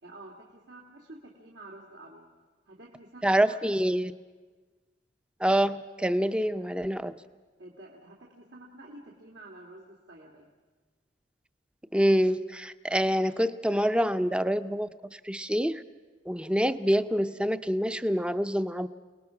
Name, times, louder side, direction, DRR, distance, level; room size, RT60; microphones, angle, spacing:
voice 1, 0.0-2.3 2.6-3.8 7.6-10.5, right 2 dB, 80° right, -2 dB, 2.6 m, -49 dB
voice 2, 3.2-4.1 5.4-7.1 11.9-15.8 16.3-18.9, equal, 5° right, 12 dB, 0.6 m, -26 dB
29.5 x 19.5 x 5.9 m, 1.4 s
head